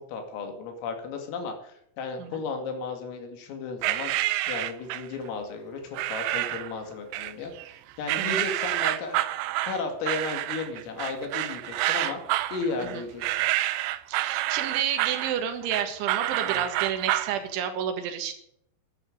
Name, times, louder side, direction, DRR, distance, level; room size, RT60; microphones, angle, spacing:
voice 1, 0.1-4.1 4.5-7.5 8.0-9.4 9.6-12.2 12.5-13.2 16.4-16.6, left 4 dB, 75° left, 4 dB, 5.0 m, -34 dB
sound 1, 3.8-5.1 5.9-6.7 7.1-7.7 8.1-17.4, right 16 dB, 85° right, 2.5 m, -28 dB
voice 2, 14.1-18.3, right 9 dB, 70° right, 7 dB, 3.8 m, -30 dB
11.0 x 11.0 x 8.5 m, 0.71 s
omnidirectional pair, 6.0 m